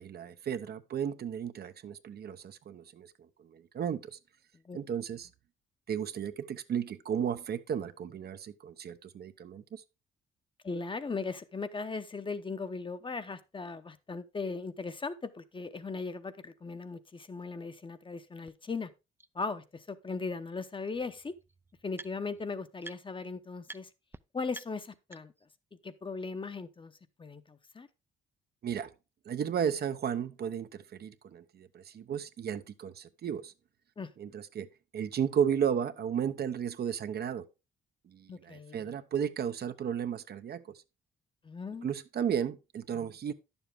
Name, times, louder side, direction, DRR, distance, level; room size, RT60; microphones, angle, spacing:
voice 1, 0.0-3.1 3.4-4.2 4.7-5.3 5.9-9.8 28.6-28.9 29.3-33.5 34.2-34.7 34.9-37.5 38.1-40.8 41.8-43.3, right 8 dB, 55° right, 0.7 m, -34 dB
voice 2, 10.6-18.9 19.3-21.3 21.8-23.9 24.3-25.3 25.8-26.9 27.2-27.9 34.0-34.1 38.3-39.0 41.4-41.9, left 4 dB, 25° left, 0.8 m, -38 dB
sound 1, 18.5-18.6 19.2-19.3 20.6-20.7 20.9-22.4 22.8-23.3 23.6-23.8 24.1-24.2 24.5-25.5, right 3 dB, 10° right, 0.4 m, -49 dB
10.0 x 7.1 x 3.5 m
cardioid pair, 90°, 20 cm